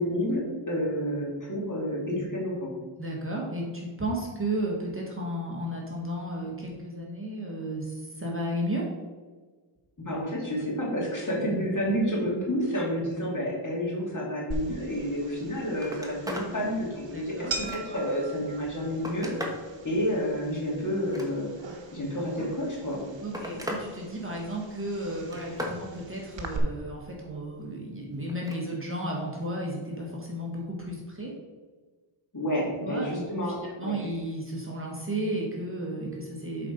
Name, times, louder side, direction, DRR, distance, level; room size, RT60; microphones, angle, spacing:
voice 1, 0.0-2.7 10.0-19.3 19.8-21.5 21.9-23.0 32.3-33.6 33.8-34.0, equal, 35° left, -4 dB, 2.3 m, -29 dB
voice 2, 3.0-8.8 17.1-17.5 23.2-31.3 32.8-33.1 33.4-36.7, right 1 dB, 25° right, -2 dB, 1.4 m, -33 dB
sound 1, 14.5-26.6, right 3 dB, 60° right, 1.1 m, -41 dB
Telephone, 15.3-15.4 15.7-16.5 17.0-18.1 18.7-19.7 20.9-21.7 22.7-23.9 24.2-24.7 25.1-25.8 28.3-28.6 30.0-30.1, equal, 5° right, 1.1 m, -38 dB
7.6 x 4.2 x 5.2 m, 1.4 s
wide cardioid pair, 115°, 50 cm